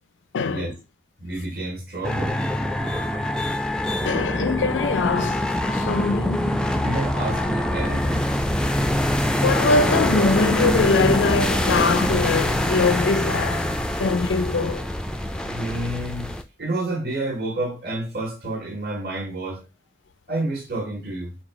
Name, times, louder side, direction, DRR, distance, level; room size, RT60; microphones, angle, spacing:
voice 1, 0.3-0.7 4.0-6.6 9.4-14.9, left 4 dB, 85° left, 0.4 m, -23 dB
voice 2, 1.2-2.3 6.8-8.3 15.4-19.6 20.3-21.4, right 2 dB, 55° right, 1.5 m, -29 dB
sound 1, 2.0-16.4, left 1 dB, 5° left, 0.3 m, -24 dB
3.9 x 2.3 x 4.6 m
head